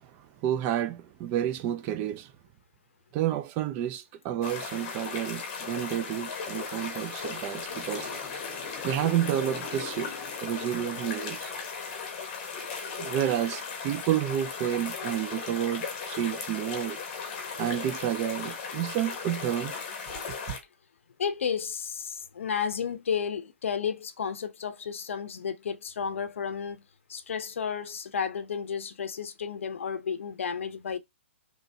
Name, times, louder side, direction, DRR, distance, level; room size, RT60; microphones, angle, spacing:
voice 1, 0.0-2.3 3.1-8.1 8.8-10.1 10.4-11.5 13.0-17.0 17.6-19.7 20.3-20.6, right 11 dB, 20° right, 0.3 m, -30 dB
sound 1, 4.4-20.6, left 5 dB, 35° left, 1.1 m, -37 dB
sound 2, 6.1-11.2, left 4 dB, 10° left, 1.2 m, -45 dB
voice 2, 21.2-26.8 27.1-31.0, left 7 dB, 70° left, 0.6 m, -32 dB
3.3 x 3.1 x 2.6 m
hypercardioid pair, 160°, 7 cm